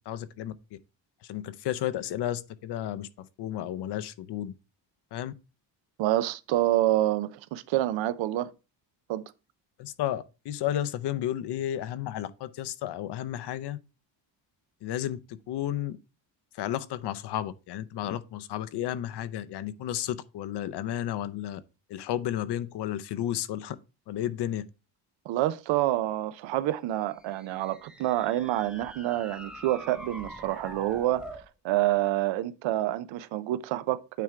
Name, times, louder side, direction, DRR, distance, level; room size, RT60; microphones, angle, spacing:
voice 1, 0.1-0.8 1.2-4.5 5.1-5.3 9.8-13.8 14.8-16.0 16.5-21.6 21.9-23.8 24.1-24.7, left 12 dB, 65° left, 0.7 m, -32 dB
voice 2, 6.0-8.5 9.1-9.3 25.3-31.2 31.6-34.2, right 14 dB, 80° right, 0.7 m, -27 dB
sound 1, 27.1-31.5, right 1 dB, ahead, 0.6 m, -45 dB
9.2 x 3.6 x 4.5 m
cardioid pair, 170°, 45 cm